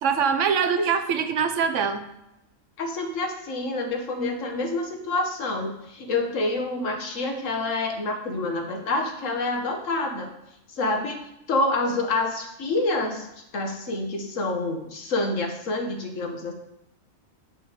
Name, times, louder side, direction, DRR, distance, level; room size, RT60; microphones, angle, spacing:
voice 1, 0.0-2.0, right 6 dB, 70° right, 9 dB, 0.9 m, -23 dB
voice 2, 2.8-10.3 10.7-13.3 13.5-16.5, left 2 dB, 70° left, 4 dB, 1.5 m, -27 dB
8.5 x 5.3 x 4.9 m, 0.83 s
omnidirectional pair, 1.4 m